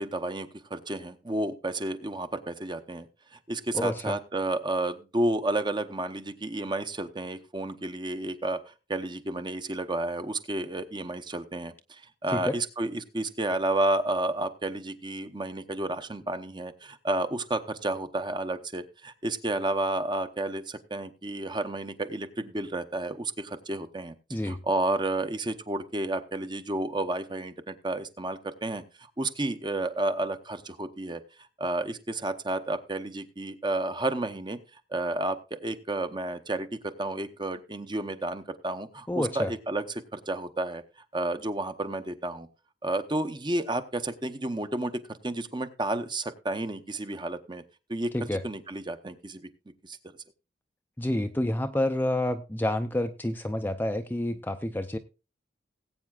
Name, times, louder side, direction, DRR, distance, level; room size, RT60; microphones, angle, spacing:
voice 1, 0.0-24.1 24.4-31.2 31.6-34.6 34.9-40.8 41.1-42.5 42.8-47.6 47.9-48.1 48.4-49.5 49.8-50.0, right 2 dB, 25° right, 9 dB, 0.8 m, -31 dB
voice 2, 3.7-4.2 12.3-12.5 24.3-24.6 39.1-39.5 48.1-48.4 51.0-55.0, left 1 dB, 10° left, 7 dB, 0.5 m, -29 dB
19.5 x 8.5 x 2.4 m, 0.31 s
head